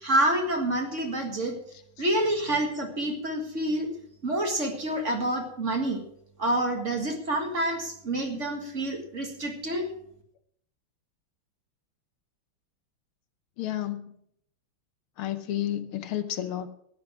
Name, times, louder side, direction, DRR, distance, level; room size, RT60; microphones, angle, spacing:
voice 1, 0.0-1.5 2.0-3.9 4.2-6.0 6.4-9.8, right 1 dB, 35° right, 3 dB, 2.0 m, -27 dB
voice 2, 13.6-14.2 15.2-16.7, left 12 dB, 80° left, 10 dB, 1.8 m, -31 dB
12.5 x 9.9 x 6.2 m, 0.69 s
omnidirectional pair, 2.4 m